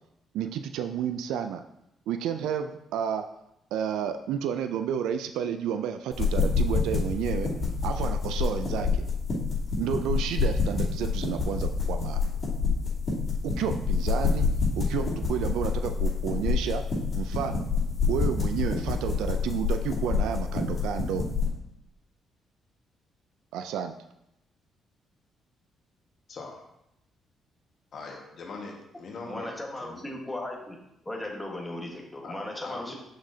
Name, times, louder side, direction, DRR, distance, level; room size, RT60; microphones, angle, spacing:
voice 1, 0.3-1.6 2.1-3.3 3.7-7.5 7.8-9.0 9.8-12.2 13.4-14.5 14.7-16.8 17.1-17.6 18.1-21.2 23.5-24.0, right 8 dB, 90° right, 8 dB, 0.3 m, -31 dB
sound 1, 6.1-21.5, left 4 dB, 40° left, 2.5 m, -27 dB
voice 2, 26.3-26.6 27.9-29.5 29.8-30.1 32.2-32.4 32.6-32.9, left 3 dB, 60° left, -1 dB, 1.5 m, -41 dB
voice 3, 29.3-30.8 31.0-32.9, left 1 dB, 10° left, 0 dB, 1.4 m, -36 dB
6.2 x 6.1 x 2.8 m, 0.82 s
cardioid pair, 90°, 0 cm